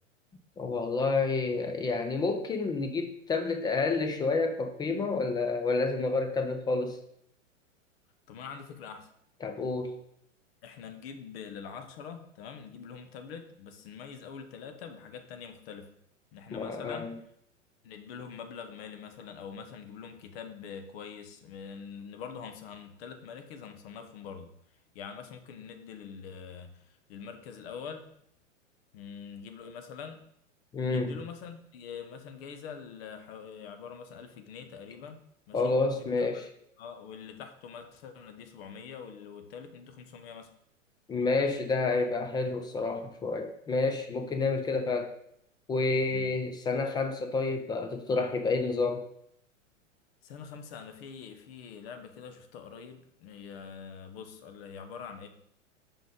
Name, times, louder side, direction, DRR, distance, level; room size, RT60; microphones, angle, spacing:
voice 1, 0.6-7.0 9.4-10.0 16.5-17.1 30.7-31.2 35.5-36.5 41.1-45.2 45.7-49.1, left 3 dB, 10° left, 6 dB, 0.4 m, -29 dB
voice 2, 8.3-9.1 10.6-15.9 16.3-17.1 17.8-24.5 24.9-28.0 28.9-30.2 30.8-35.2 35.5-36.4 36.8-40.5 46.1-46.3 50.2-55.3, left 6 dB, 50° left, 7 dB, 1.2 m, -44 dB
7.4 x 5.2 x 3.7 m, 0.71 s
figure-of-eight pair, 105°, 38 cm